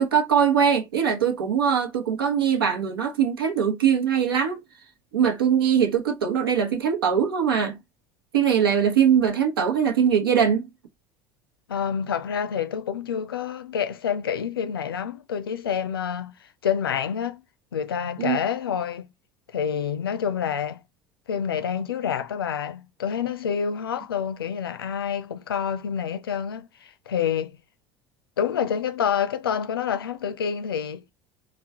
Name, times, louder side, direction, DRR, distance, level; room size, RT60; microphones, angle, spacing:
voice 1, 0.0-4.6 5.1-7.8 8.3-10.7 18.2-18.4, right 7 dB, 75° right, 1.0 m, -21 dB
voice 2, 11.7-17.4 17.7-19.1 19.5-20.8 21.3-27.6 28.4-31.0, left 8 dB, 80° left, 0.5 m, -28 dB
4.2 x 2.3 x 3.4 m
figure-of-eight pair, 70°, 12 cm